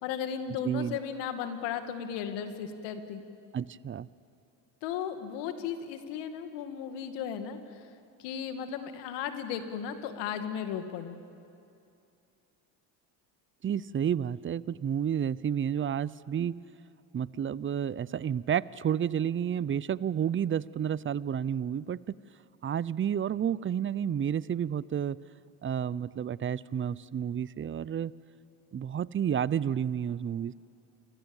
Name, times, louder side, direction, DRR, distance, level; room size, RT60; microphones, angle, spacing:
voice 1, 0.0-3.2 4.8-7.9 8.2-11.2, left 8 dB, 80° left, 8 dB, 2.4 m, -35 dB
voice 2, 0.6-1.0 3.5-4.1 13.6-16.5 17.1-22.2 22.6-25.2 25.6-28.1 28.7-30.5, right 9 dB, 30° right, 20 dB, 0.7 m, -30 dB
29.0 x 24.5 x 7.3 m, 2.6 s
supercardioid pair, 80°, 42 cm